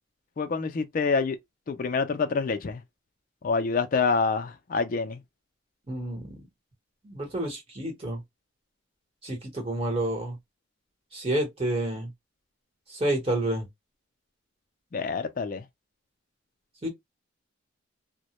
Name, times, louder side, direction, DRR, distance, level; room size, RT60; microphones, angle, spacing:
voice 1, 0.4-1.4 1.7-2.8 3.4-5.2 14.9-15.7, left 4 dB, 40° left, 0.3 m, -27 dB
voice 2, 5.9-6.4 7.0-8.2 9.2-10.4 11.1-12.1 12.9-13.7 16.8-16.9, right 1 dB, 30° right, 1.0 m, -29 dB
2.1 x 2.0 x 2.8 m
head